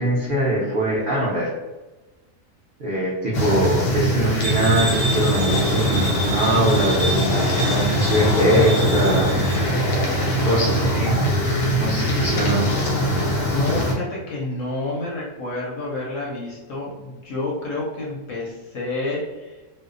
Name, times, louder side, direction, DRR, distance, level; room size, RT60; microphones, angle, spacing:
voice 1, 0.0-1.5 2.8-9.4 10.4-11.2 11.8-12.7, right 1 dB, 65° right, -8 dB, 0.5 m, -22 dB
sound 1, 3.3-13.9, equal, 90° left, 1.2 m, -22 dB
sound 2, 4.4-9.6, right 1 dB, 40° right, 1.0 m, -29 dB
voice 2, 11.7-12.2 13.0-19.6, left 2 dB, 65° left, -4 dB, 0.8 m, -30 dB
2.7 x 2.0 x 2.5 m, 1.2 s
omnidirectional pair, 1.7 m